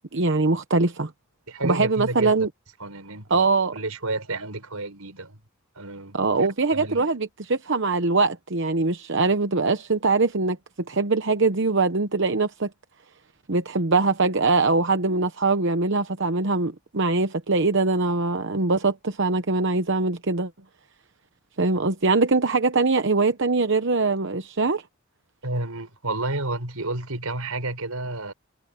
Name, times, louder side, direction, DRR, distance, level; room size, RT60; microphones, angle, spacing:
voice 1, 0.1-1.1 1.6-2.5 3.3-3.7 6.1-10.6 10.9-12.7 13.5-20.5 21.6-24.8, right 3 dB, 55° right, 0.9 m, -22 dB
voice 2, 1.5-2.5 2.8-5.4 5.8-7.1 25.4-28.3, right 2 dB, 80° right, 5.3 m, -31 dB
head